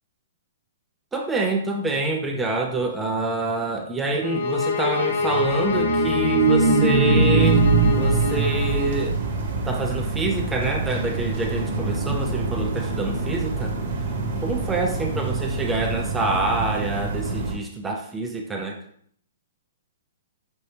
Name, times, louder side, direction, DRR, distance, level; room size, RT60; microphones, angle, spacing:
voice 1, 1.1-7.7 7.9-9.2 9.6-13.7 14.4-18.8, right 2 dB, 10° right, 2 dB, 0.4 m, -26 dB
sound 1, 4.2-9.1, left 5 dB, 70° left, 0.6 m, -26 dB
sound 2, 5.2-9.7, right 4 dB, 80° right, 0.7 m, -20 dB
sound 3, 7.4-17.5, right 3 dB, 45° right, 1.0 m, -28 dB
5.3 x 2.8 x 3.1 m, 0.64 s
hypercardioid pair, 155°, 0 cm